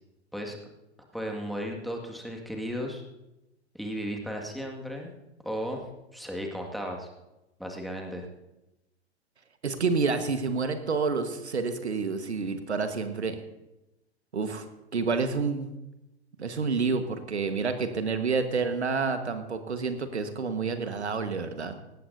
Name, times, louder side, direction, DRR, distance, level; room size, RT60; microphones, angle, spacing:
voice 1, 1.1-3.0 3.7-5.2 5.4-7.1 7.6-8.3, equal, ahead, 1 dB, 1.9 m, -35 dB
voice 2, 9.6-13.4 14.3-14.7 14.9-15.7 16.4-21.7, right 4 dB, 80° right, 8 dB, 1.5 m, -29 dB
18.5 x 16.5 x 2.7 m, 0.98 s
figure-of-eight pair, 100°, 33 cm